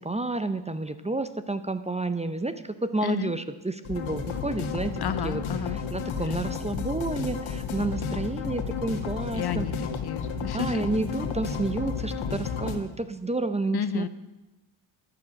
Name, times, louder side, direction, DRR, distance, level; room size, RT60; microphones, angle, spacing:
voice 1, 0.0-5.4 5.9-9.7 10.4-14.1, right 2 dB, 15° right, 11 dB, 0.7 m, -30 dB
voice 2, 3.0-3.3 5.0-5.8 9.3-10.8 13.7-14.1, left 9 dB, 50° left, 13 dB, 0.9 m, -32 dB
sound 1, 3.8-12.8, left 5 dB, 70° left, 1.8 m, -32 dB
13.5 x 9.9 x 6.4 m, 1.0 s
cardioid pair, 80°, 50 cm